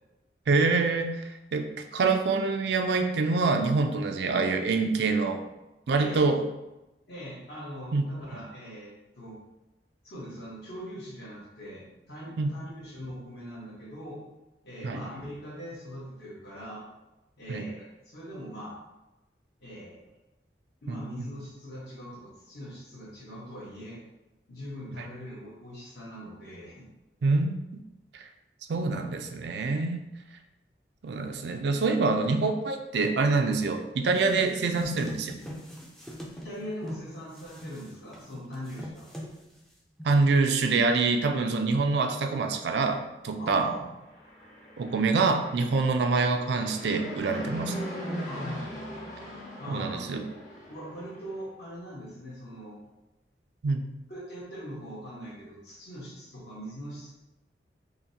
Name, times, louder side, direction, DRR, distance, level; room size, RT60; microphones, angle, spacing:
voice 1, 0.5-1.2 1.5-5.4 5.9-6.4 7.9-8.1 12.4-12.5 14.8-15.0 17.5-17.7 20.9-21.0 27.2-27.6 28.1-28.3 28.7-30.0 31.0-35.4 40.0-43.7 44.8-47.8 49.7-50.2 53.6-53.8, right 3 dB, 70° right, 6 dB, 0.4 m, -25 dB
voice 2, 7.1-9.3 10.0-14.2 14.6-16.8 17.4-18.8 19.6-20.1 20.8-24.0 24.5-26.9 36.3-39.1 43.4-43.9 48.3-48.7 49.6-50.1 50.7-52.8 54.1-57.1, equal, 60° left, -6 dB, 1.4 m, -41 dB
sound 1, 34.0-37.0 37.3-39.7 40.0-40.3, equal, ahead, 0.4 m, -42 dB
Fixed-wing aircraft airplane, 44.0-51.4, equal, 40° left, 1.1 m, -39 dB
5.5 x 2.2 x 2.8 m, 0.98 s
head